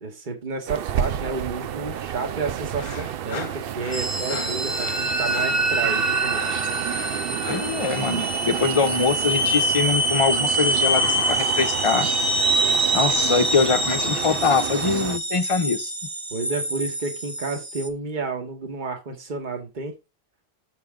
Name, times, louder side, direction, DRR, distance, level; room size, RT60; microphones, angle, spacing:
voice 1, 0.0-6.6 16.3-19.9, right 4 dB, 50° right, 1.6 m, -31 dB
sound 1, 0.7-15.2, right 10 dB, 70° right, 0.7 m, -31 dB
sound 2, 2.8-7.8, left 7 dB, 60° left, 1.0 m, -39 dB
sound 3, 3.9-17.9, right 1 dB, 15° right, 0.9 m, -25 dB
voice 2, 7.5-12.1 12.9-15.9, left 5 dB, 35° left, 0.7 m, -23 dB
7.0 x 5.3 x 3.7 m
omnidirectional pair, 1.1 m